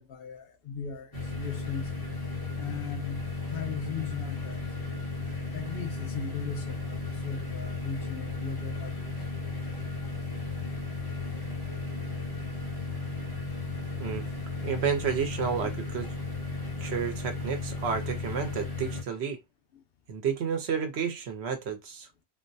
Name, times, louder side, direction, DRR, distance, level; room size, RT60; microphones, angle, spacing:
voice 1, 0.0-1.9 2.6-3.2 3.5-4.6 5.5-9.1 13.8-13.9 14.3-14.4 19.7-19.8, left 6 dB, 65° left, 0.9 m, -39 dB
sound 1, 1.1-19.0, left 3 dB, 20° left, 1.1 m, -35 dB
voice 2, 14.6-16.1 16.8-19.4 20.1-22.2, right 6 dB, 75° right, 1.0 m, -31 dB
3.7 x 2.1 x 2.6 m
omnidirectional pair, 1.1 m